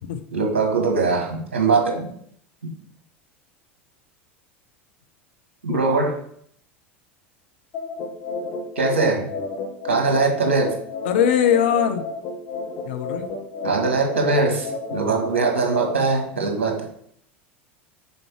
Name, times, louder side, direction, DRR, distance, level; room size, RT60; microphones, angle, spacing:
voice 1, 0.3-2.1 5.6-6.2 8.7-9.3 9.8-10.8 13.6-16.9, right 4 dB, 70° right, 2 dB, 1.7 m, -21 dB
sound 1, 7.7-16.0, left 3 dB, 40° left, 1.5 m, -31 dB
voice 2, 11.0-12.0 12.8-13.3, left 9 dB, 60° left, 7 dB, 0.8 m, -20 dB
6.6 x 4.2 x 4.5 m, 0.65 s
figure-of-eight pair, 80°, 7 cm